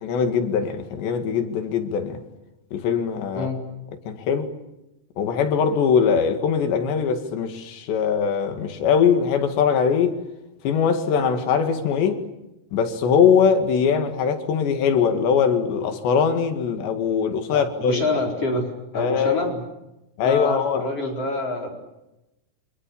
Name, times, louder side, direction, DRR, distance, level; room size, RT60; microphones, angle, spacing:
voice 1, 0.0-2.2 2.7-3.5 4.1-4.5 5.2-10.2 10.6-12.2 12.7-18.0 19.0-19.4 20.2-20.9, left 6 dB, 90° left, 4.4 m, -21 dB
voice 2, 17.5-19.6 20.2-21.7, left 2 dB, 35° left, 5.1 m, -26 dB
30.0 x 26.5 x 7.1 m
omnidirectional pair, 4.9 m